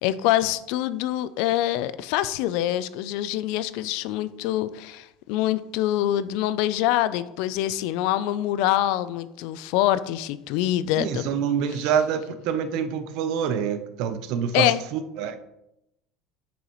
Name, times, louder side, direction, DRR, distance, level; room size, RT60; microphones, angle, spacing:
voice 1, 0.0-11.3 14.5-14.8, left 13 dB, 60° left, 15 dB, 0.4 m, -25 dB
voice 2, 11.0-15.4, right 7 dB, 55° right, 10 dB, 0.7 m, -26 dB
8.7 x 7.0 x 3.1 m, 0.85 s
cardioid pair, 175°, 0 cm